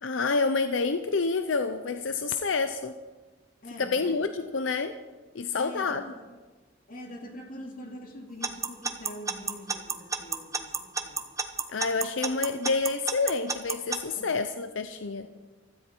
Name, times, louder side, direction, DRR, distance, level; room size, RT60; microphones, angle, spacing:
voice 1, 0.0-2.9 3.8-4.9 5.3-6.1 11.7-15.3, left 4 dB, 85° left, 9 dB, 0.7 m, -28 dB
voice 2, 3.6-4.2 5.5-6.3 6.9-11.3 14.1-14.3, equal, 45° left, 1 dB, 2.6 m, -44 dB
Alarm / Clock, 8.4-14.0, right 4 dB, 15° right, 0.9 m, -29 dB
16.0 x 13.0 x 4.6 m, 1.3 s
head